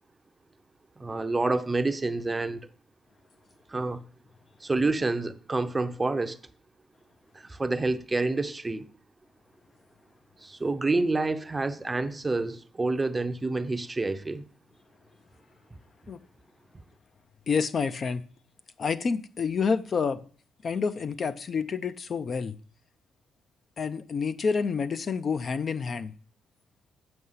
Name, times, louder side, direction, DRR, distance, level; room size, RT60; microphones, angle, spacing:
voice 1, 1.0-2.7 3.7-4.0 4.6-6.4 7.3-8.8 10.4-14.4, right 3 dB, 15° right, 0.6 m, -28 dB
voice 2, 17.5-18.2 18.8-20.2 20.6-22.6 23.8-26.1, left 5 dB, 40° left, 0.4 m, -28 dB
7.8 x 5.6 x 5.6 m
cardioid pair, 135°, 0 cm